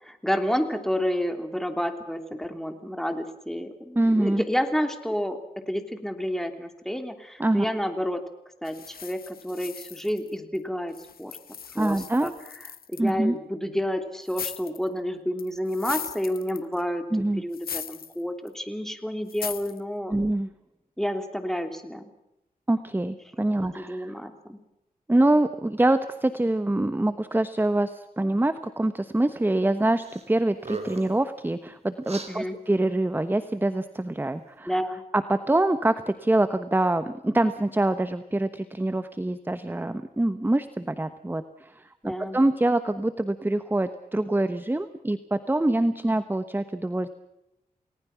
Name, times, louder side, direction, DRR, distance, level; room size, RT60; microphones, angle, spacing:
voice 1, 0.0-5.4 5.7-8.2 8.6-10.9 11.2-11.3 11.7-12.3 12.9-20.2 21.0-22.0 23.8-24.6 32.3-32.6 34.7-35.0 42.0-42.4, equal, 5° left, 7 dB, 3.1 m, -30 dB
voice 2, 3.9-4.4 7.4-7.6 11.8-12.3 13.0-13.4 17.1-17.4 20.1-20.5 22.7-24.1 25.1-34.7 35.1-47.1, right 1 dB, 15° right, 11 dB, 1.1 m, -25 dB
sound 1, 8.7-10.6 10.9-13.1 14.3-14.9 15.4-16.8 17.5-18.2 18.5-18.6 19.3-19.8, left 7 dB, 90° left, 1.2 m, -38 dB
sound 2, 30.0-30.3 30.6-31.2 32.0-32.3, right 4 dB, 45° right, 4.2 m, -36 dB
29.5 x 19.5 x 5.9 m, 0.87 s
wide cardioid pair, 95°, 15 cm